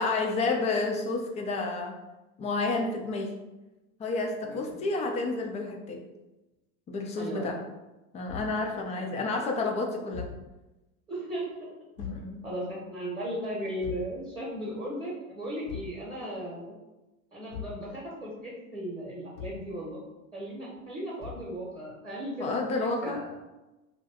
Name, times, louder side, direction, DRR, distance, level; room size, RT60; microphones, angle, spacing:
voice 1, 0.0-2.0 2.4-3.3 4.0-6.0 6.9-7.6 8.1-10.3 12.0-12.5 22.4-23.2, left 3 dB, 15° left, 2 dB, 0.3 m, -30 dB
voice 2, 4.4-4.8 7.2-7.6 9.0-9.1 11.1-11.6 12.4-16.8 17.3-20.0 20.3-23.3, equal, 10° right, -5 dB, 0.9 m, -36 dB
Thump thud, 8.3-8.6 10.1-10.5 12.0-12.3 13.8-14.2 15.6-16.0 17.5-17.8 19.3-19.7 21.2-21.5, left 7 dB, 75° left, 1.0 m, -40 dB
2.5 x 2.4 x 3.4 m, 1.0 s
hypercardioid pair, 80°, 42 cm